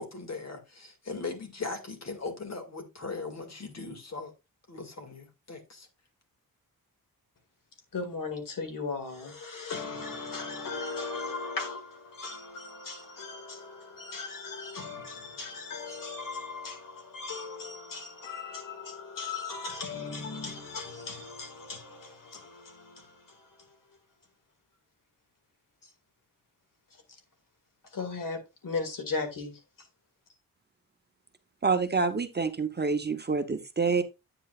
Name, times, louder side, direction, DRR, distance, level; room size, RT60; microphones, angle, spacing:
voice 1, 0.0-4.3 4.7-5.9, left 4 dB, 45° left, 2.1 m, -39 dB
voice 2, 7.9-23.5 27.9-29.6, left 4 dB, 65° left, 2.2 m, -37 dB
voice 3, 31.6-34.0, right 4 dB, 30° right, 0.9 m, -27 dB
8.8 x 8.0 x 2.4 m
wide cardioid pair, 105°, 36 cm